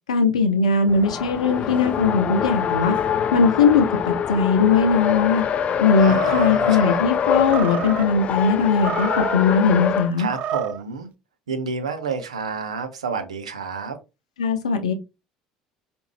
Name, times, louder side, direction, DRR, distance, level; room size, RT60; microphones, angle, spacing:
voice 1, 0.1-3.0 3.3-5.4 5.8-10.3 14.4-14.9, left 5 dB, 75° left, 0.7 m, -19 dB
Race car auto racing, 0.9-10.1, left 8 dB, 35° left, 0.4 m, -24 dB
Animal, 6.0-6.8 7.4-8.1 8.7-9.4 10.1-10.8, right 9 dB, 45° right, 0.3 m, -30 dB
voice 2, 6.0-7.0 10.2-11.1 11.5-14.0, right 5 dB, 80° right, 0.7 m, -30 dB
5.0 x 2.6 x 3.2 m
figure-of-eight pair, 65°, 3 cm